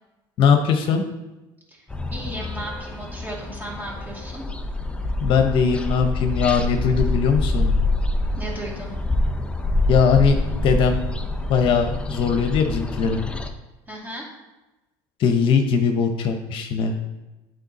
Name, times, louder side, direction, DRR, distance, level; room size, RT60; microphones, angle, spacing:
voice 1, 0.4-1.0 5.2-7.7 9.9-10.4 10.6-11.0 11.5-13.2 15.2-17.0, left 6 dB, 55° left, 6 dB, 0.8 m, -20 dB
sound 1, 1.9-13.5, left 2 dB, 10° left, 0.7 m, -26 dB
voice 2, 2.1-4.4 8.4-8.9 13.9-14.3, right 1 dB, 15° right, -4 dB, 2.6 m, -35 dB
9.0 x 4.6 x 4.1 m, 1.0 s
supercardioid pair, 110°, 11 cm